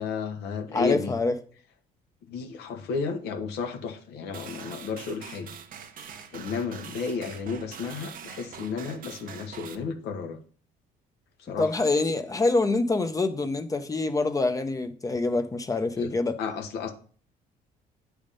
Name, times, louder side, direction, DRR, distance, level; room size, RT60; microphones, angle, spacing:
voice 1, 0.0-1.1 2.3-5.5 5.9-10.4 11.4-11.7 16.0-16.1 16.4-16.9, left 5 dB, 80° left, 1.1 m, -33 dB
voice 2, 0.7-1.3 11.6-16.4, left 3 dB, 20° left, 0.7 m, -26 dB
sound 1, 4.3-9.7, right 8 dB, 55° right, 0.8 m, -44 dB
8.7 x 3.5 x 5.2 m
cardioid pair, 110°, 17 cm